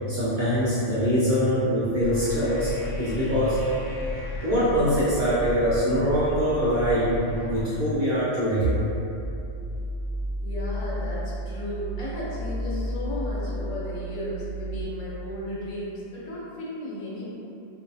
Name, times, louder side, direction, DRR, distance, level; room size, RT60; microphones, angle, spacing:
voice 1, 0.1-2.7 3.0-3.6 4.4-8.7, equal, 60° right, -11 dB, 0.5 m, -23 dB
sound 1, 2.0-7.6, left 2 dB, 60° left, 0.8 m, -34 dB
sound 2, 9.2-14.8, equal, 25° left, 0.5 m, -32 dB
voice 2, 10.4-17.3, left 1 dB, 85° left, -7 dB, 1.1 m, -34 dB
2.6 x 2.3 x 2.5 m, 2.8 s
omnidirectional pair, 1.3 m